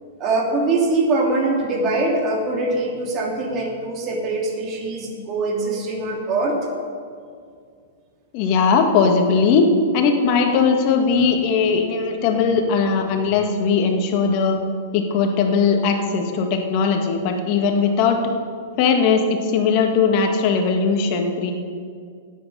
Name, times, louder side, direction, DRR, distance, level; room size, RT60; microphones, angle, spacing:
voice 1, 0.2-6.6, right 2 dB, 35° right, -1 dB, 2.9 m, -22 dB
voice 2, 8.3-9.7 9.9-14.6 14.9-18.2 18.8-21.5, left 5 dB, 45° left, 4 dB, 1.9 m, -19 dB
9.5 x 9.1 x 8.6 m, 2.2 s
hypercardioid pair, 120°, 0 cm